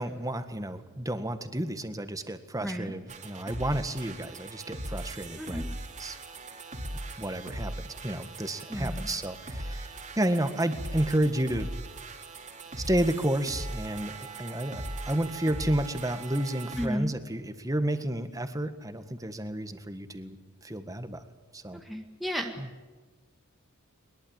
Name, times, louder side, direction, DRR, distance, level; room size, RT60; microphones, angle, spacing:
voice 1, 0.0-6.2 7.2-7.7 8.0-11.7 12.9-21.2 21.5-21.8 22.6-22.7, right 1 dB, 15° right, 9 dB, 1.7 m, -31 dB
voice 2, 2.6-2.9 5.4-5.7 8.7-9.1 16.8-17.2 21.8-22.5, equal, ahead, 2 dB, 1.7 m, -33 dB
sound 1, 3.1-16.9, right 1 dB, 35° right, 2.9 m, -39 dB
22.0 x 21.5 x 8.9 m, 1.3 s
head